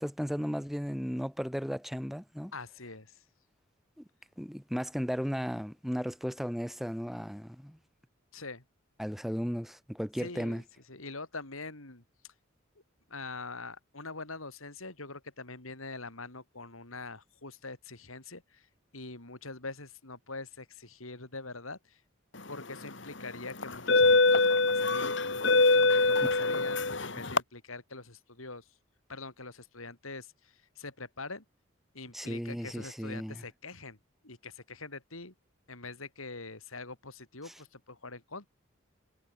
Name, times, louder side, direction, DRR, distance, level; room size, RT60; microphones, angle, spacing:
voice 1, 0.0-2.5 4.0-4.1 4.4-7.8 9.0-10.6 32.1-33.4 37.5-37.6, equal, ahead, 2.4 m, -35 dB
voice 2, 2.5-3.1 8.3-8.6 10.2-10.6 10.9-12.0 13.1-18.6 18.9-22.0 22.5-28.6 29.1-31.4 31.9-34.0 34.2-35.3 35.7-38.5, left 3 dB, 90° left, 4.9 m, -44 dB
sound 1, 22.6-22.9 23.6-27.4, left 3 dB, 60° left, 2.8 m, -24 dB
head